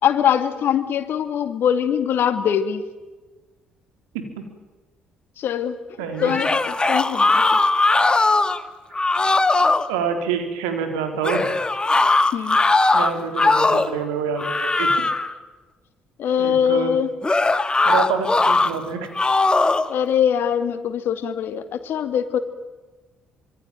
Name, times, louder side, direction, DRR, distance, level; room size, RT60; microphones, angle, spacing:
voice 1, 0.0-2.8 5.4-5.8 6.2-7.6 12.3-12.6 16.2-17.1 19.9-22.4, left 8 dB, 55° left, 10 dB, 2.4 m, -22 dB
voice 2, 4.1-4.4 6.0-6.3 9.9-11.5 12.9-15.0 16.4-16.9 17.8-19.1, right 6 dB, 70° right, 6 dB, 4.1 m, -27 dB
sound 1, 6.2-8.6 8.9-9.9 11.2-14.0 14.4-15.3 17.2-18.7 19.1-19.9, left 3 dB, 20° left, 1.9 m, -19 dB
26.0 x 23.0 x 9.1 m, 1.2 s
figure-of-eight pair, 45°, 4 cm